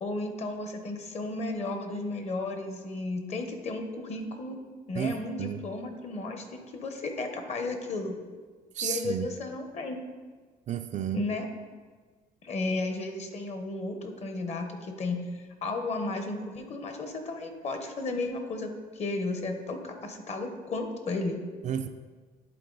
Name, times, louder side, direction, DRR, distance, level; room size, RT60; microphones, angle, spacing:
voice 1, 0.0-4.6 4.9-8.2 8.8-10.0 11.1-11.5 12.4-21.4, left 2 dB, 40° left, 6 dB, 1.0 m, -34 dB
voice 2, 4.9-5.7 8.7-9.4 10.7-11.3 21.6-21.9, right 8 dB, 45° right, 8 dB, 0.4 m, -32 dB
10.5 x 4.0 x 3.9 m, 1.4 s
cardioid pair, 110°, 17 cm